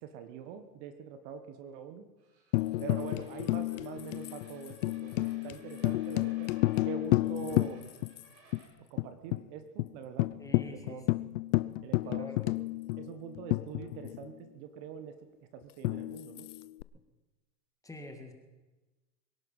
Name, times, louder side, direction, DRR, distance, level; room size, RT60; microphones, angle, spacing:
voice 1, 0.0-2.1 2.8-6.5 6.8-7.9 8.8-11.0 11.8-12.6 12.9-15.2 15.5-16.5, right 8 dB, 45° right, 9 dB, 1.5 m, -44 dB
sound 1, 2.2-8.7, right 3 dB, 85° right, 4.6 m, -60 dB
Tambourine, 2.5-8.2 8.5-8.6 9.0-9.4 9.8-9.9 10.2-14.3 15.8-16.8, left 19 dB, 50° left, 0.6 m, -31 dB
voice 2, 10.4-11.0 12.0-12.4 17.8-18.3, left 2 dB, 5° left, 4 dB, 1.9 m, -45 dB
23.0 x 11.0 x 5.6 m, 1.2 s
hypercardioid pair, 135°, 49 cm